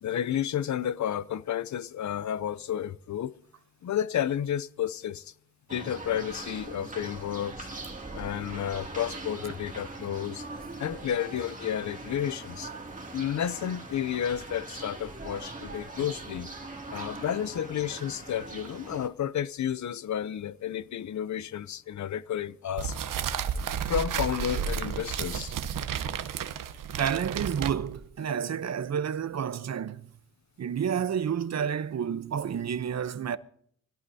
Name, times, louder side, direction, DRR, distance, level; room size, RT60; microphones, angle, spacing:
voice 1, 0.0-3.4 3.8-5.3 5.7-7.7 8.1-10.5 10.8-12.7 13.1-16.5 16.9-23.0 23.6-25.6, left 10 dB, 60° left, 0.6 m, -31 dB
sound 1, 5.7-19.1, right 2 dB, 25° right, 2.4 m, -41 dB
sound 2, 22.8-28.1, right 8 dB, 80° right, 0.9 m, -32 dB
voice 2, 27.0-30.1 30.6-33.4, right 8 dB, 55° right, 0.8 m, -30 dB
24.0 x 17.0 x 2.7 m
cardioid pair, 70°, 32 cm